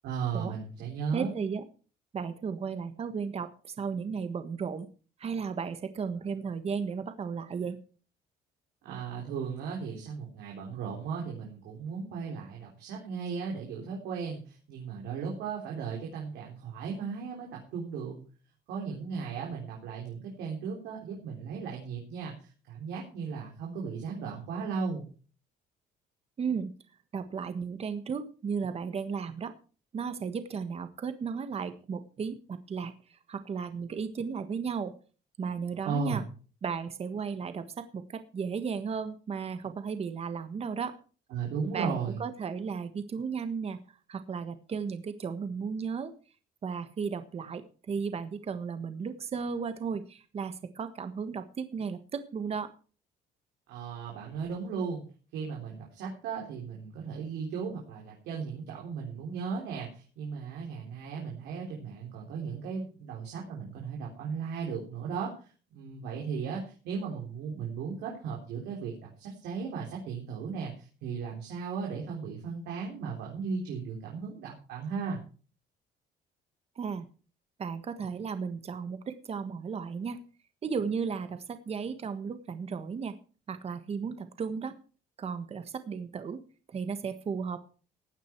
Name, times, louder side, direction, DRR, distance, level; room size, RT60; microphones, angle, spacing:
voice 1, 0.0-1.3 8.8-18.1 18.7-25.1 35.8-36.3 41.3-42.2 53.7-55.0 55.3-75.2, right 5 dB, 85° right, -1 dB, 3.8 m, -36 dB
voice 2, 1.1-1.6 2.1-4.9 5.2-7.8 26.4-26.7 27.1-29.5 29.9-34.9 35.4-36.2 36.6-41.0 41.7-43.8 44.1-46.1 46.6-52.7 76.8-77.1 77.6-80.2 80.6-83.1 83.5-84.7 85.2-86.4 86.7-87.7, right 6 dB, 35° right, 10 dB, 1.4 m, -35 dB
16.0 x 9.4 x 4.6 m, 0.38 s
cardioid pair, 110°, 17 cm